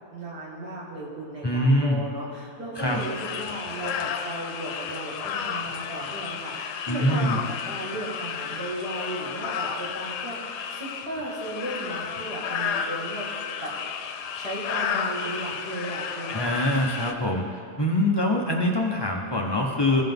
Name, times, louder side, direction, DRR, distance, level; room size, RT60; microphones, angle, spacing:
voice 1, 0.1-13.3 13.6-13.7 14.3-16.5, right 1 dB, 90° right, -5 dB, 2.7 m, -35 dB
voice 2, 1.4-2.0 2.8-3.0 6.9-7.4 16.3-17.4 17.8-20.0, left 1 dB, 45° left, 0 dB, 0.3 m, -24 dB
sound 1, 2.8-17.1, left 7 dB, 90° left, 1.2 m, -32 dB
16.0 x 5.7 x 3.6 m, 2.5 s
omnidirectional pair, 1.7 m